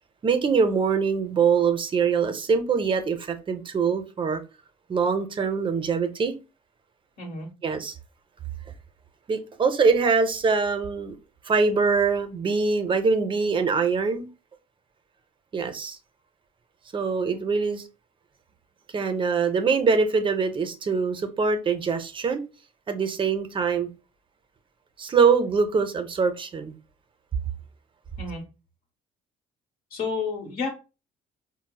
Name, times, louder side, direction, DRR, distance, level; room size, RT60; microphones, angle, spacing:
voice 1, 0.2-4.4 4.9-6.3 7.6-8.0 9.3-11.2 11.4-14.3 15.5-16.0 16.9-17.8 18.9-22.4 22.9-23.9 25.0-26.7, right 5 dB, 30° right, 0.5 m, -23 dB
voice 2, 7.2-7.5 28.2-28.4 29.9-30.7, left 4 dB, 65° left, 1.1 m, -30 dB
4.3 x 2.0 x 2.2 m
cardioid pair, 110°, 17 cm